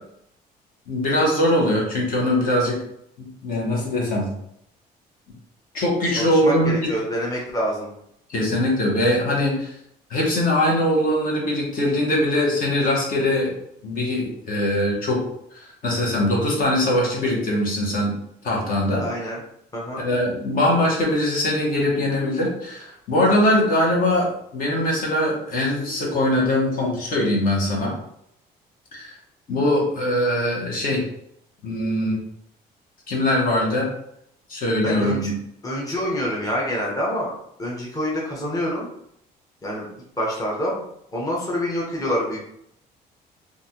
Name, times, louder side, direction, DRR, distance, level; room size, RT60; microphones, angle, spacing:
voice 1, 0.9-2.8 3.2-4.3 5.7-6.9 8.3-9.7 10.1-13.5 13.8-15.2 15.5-18.2 18.4-19.1 20.0-27.9 28.9-29.1 29.5-31.0 31.6-32.2 33.1-33.9 34.5-35.3, left 1 dB, 55° left, -2 dB, 1.2 m, -22 dB
voice 2, 6.2-7.9 19.0-19.4 19.7-20.0 34.8-35.3 35.6-37.3 37.6-38.9 39.6-39.9 40.2-40.8 41.1-42.4, equal, 20° left, -3 dB, 0.9 m, -26 dB
3.2 x 2.5 x 2.8 m, 0.72 s
cardioid pair, 110°, 17 cm